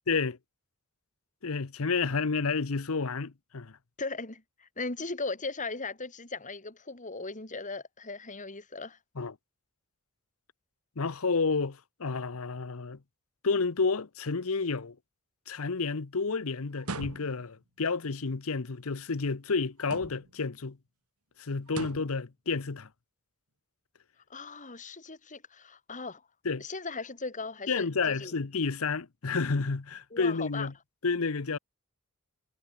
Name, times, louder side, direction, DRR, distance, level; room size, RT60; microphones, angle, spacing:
voice 1, 0.1-0.4 1.4-3.8 9.2-9.3 11.0-13.0 13.4-15.0 15.5-20.8 21.4-22.9 26.4-26.6 27.7-30.7 31.0-31.6, left 4 dB, 70° left, 0.9 m, -30 dB
voice 2, 4.0-9.0 24.3-26.2 26.6-28.3 30.1-30.7, left 3 dB, 35° left, 3.2 m, -38 dB
sound 1, 16.8-17.6 19.8-20.4 21.7-22.2, right 2 dB, 85° right, 2.6 m, -40 dB
head